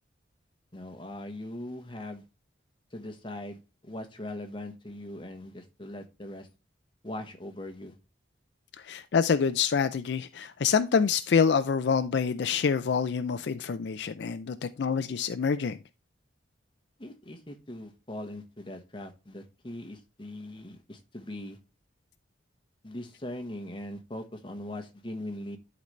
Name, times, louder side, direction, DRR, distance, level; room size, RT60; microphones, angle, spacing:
voice 1, 0.7-2.2 2.9-6.5 7.0-7.9 17.0-21.6 22.8-25.6, left 1 dB, 25° left, 1.1 m, -40 dB
voice 2, 8.9-15.8, left 6 dB, 65° left, 0.4 m, -26 dB
11.5 x 4.0 x 3.1 m
head